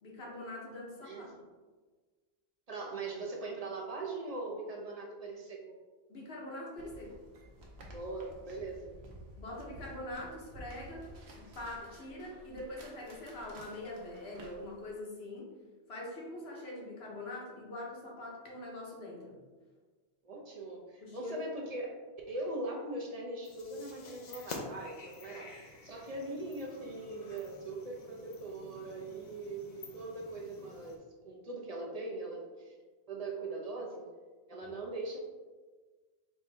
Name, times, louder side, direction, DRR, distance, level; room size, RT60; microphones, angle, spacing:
voice 1, 0.0-1.4 6.1-7.2 9.4-15.5 15.9-19.4 21.0-21.4, left 1 dB, 80° left, -3 dB, 1.3 m, -43 dB
voice 2, 1.0-1.4 2.7-5.7 7.9-9.0 20.2-22.0 22.3-25.5 25.8-32.7 33.1-34.1 34.5-35.2, right 2 dB, 40° right, -1 dB, 0.7 m, -41 dB
sound 1, 6.7-14.9, equal, 85° right, 1.0 m, -52 dB
sound 2, 23.4-31.0, left 3 dB, 50° left, 0.6 m, -49 dB
4.4 x 2.8 x 3.3 m, 1.4 s
omnidirectional pair, 1.1 m